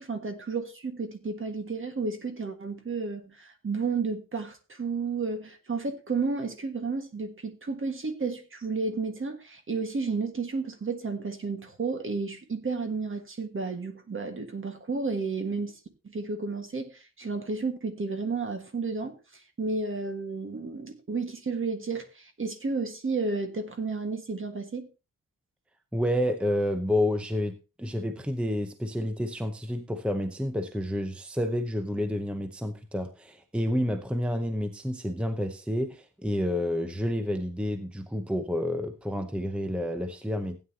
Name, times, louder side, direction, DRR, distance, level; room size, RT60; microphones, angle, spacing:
voice 1, 0.0-15.7 16.0-19.2 19.6-24.9, right 4 dB, 35° right, 1.6 m, -32 dB
voice 2, 25.9-40.6, left 1 dB, 5° right, 0.7 m, -29 dB
16.0 x 9.4 x 2.8 m
wide cardioid pair, 170°, 34 cm